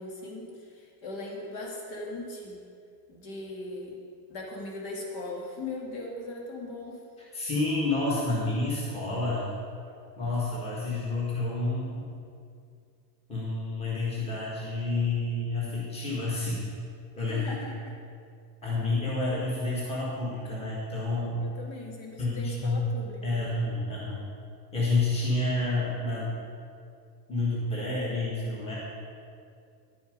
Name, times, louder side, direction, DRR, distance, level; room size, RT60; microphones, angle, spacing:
voice 1, 0.0-2.6 3.1-4.0 4.3-7.0 17.2-17.9 21.4-23.4, left 2 dB, 50° left, -1 dB, 2.1 m, -39 dB
voice 2, 7.3-9.5 10.2-12.1 13.3-16.6 17.2-17.8 18.6-21.4 22.2-22.8 23.2-24.2 24.7-26.3 27.3-28.8, left 2 dB, 10° left, -6 dB, 1.6 m, -29 dB
10.5 x 7.0 x 5.2 m, 2.3 s
cardioid pair, 165°, 49 cm